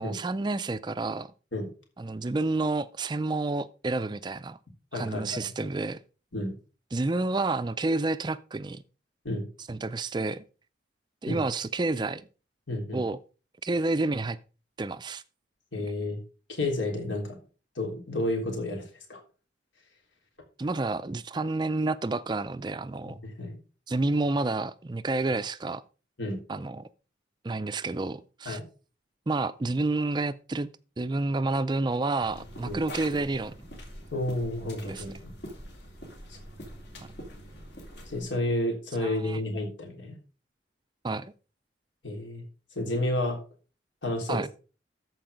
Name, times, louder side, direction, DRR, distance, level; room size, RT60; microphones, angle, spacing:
voice 1, 0.0-1.3 2.0-4.6 4.9-6.0 6.9-8.8 9.7-10.4 11.2-12.3 12.9-13.2 13.6-14.4 14.8-15.2 20.6-23.2 23.9-25.8 26.5-26.9 27.4-28.6 29.3-30.7 31.0-33.7 34.8-35.0 39.0-39.4 41.0-41.3 44.3-44.5, right 2 dB, 25° right, 0.4 m, -29 dB
voice 2, 4.9-5.7 6.3-6.5 9.2-9.5 11.3-11.4 12.7-13.0 15.7-16.2 16.5-17.4 17.7-19.2 23.0-23.6 26.2-26.4 28.4-28.6 32.6-32.8 34.1-35.3 36.3-36.4 38.1-40.2 42.0-42.4 42.7-43.4 44.0-44.4, left 1 dB, 80° left, 3.4 m, -31 dB
sound 1, 32.2-38.2, equal, 65° left, 3.5 m, -44 dB
13.5 x 4.7 x 5.0 m
head